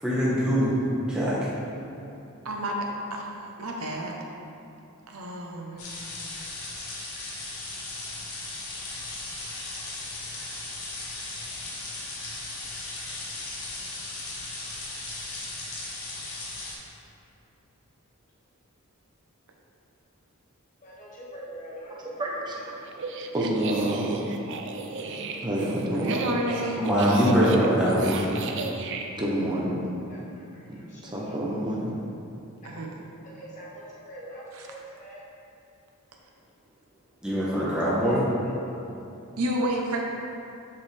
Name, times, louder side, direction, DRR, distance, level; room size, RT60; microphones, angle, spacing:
voice 1, 0.0-0.7 1.1-1.4 26.8-28.4 37.2-38.3, equal, 5° right, -10 dB, 1.1 m, -22 dB
voice 2, 2.4-4.2 5.1-5.9 26.1-26.9 32.6-32.9 34.5-34.7 39.4-40.0, right 1 dB, 75° right, 0 dB, 0.8 m, -30 dB
sound 1, 5.8-16.7, left 2 dB, 75° left, 1.2 m, -37 dB
voice 3, 20.8-22.2 30.1-31.3 33.3-35.2 38.0-38.2, right 1 dB, 35° left, -6 dB, 1.4 m, -44 dB
voice 4, 22.0-24.3 25.4-26.2 29.1-29.8 30.7-31.9, right 1 dB, 20° right, -3 dB, 0.8 m, -29 dB
sound 2, 22.9-29.1, right 4 dB, 55° right, 0.5 m, -34 dB
6.8 x 5.2 x 3.3 m, 2.8 s
head